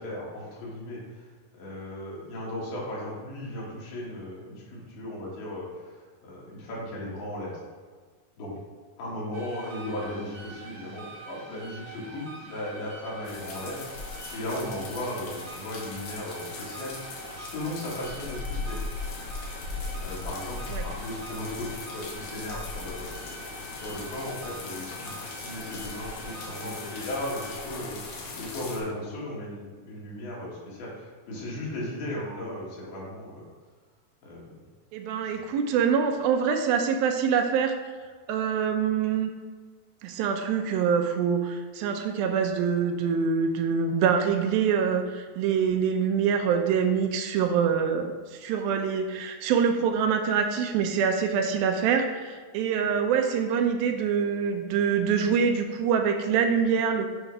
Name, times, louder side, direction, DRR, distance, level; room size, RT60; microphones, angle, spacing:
voice 1, 0.0-7.6 8.4-8.6 9.0-18.8 20.0-33.5 34.2-34.7 35.2-35.3, left 1 dB, 85° left, -5 dB, 3.8 m, -36 dB
sound 1, 9.3-27.5, right 2 dB, 55° right, 1.3 m, -45 dB
sound 2, 13.2-28.8, left 3 dB, 65° left, 2.2 m, -38 dB
voice 2, 34.9-37.8 38.3-39.3 40.0-57.1, right 6 dB, 85° right, 5 dB, 2.4 m, -25 dB
9.1 x 3.4 x 5.4 m, 1.5 s
omnidirectional pair, 4.2 m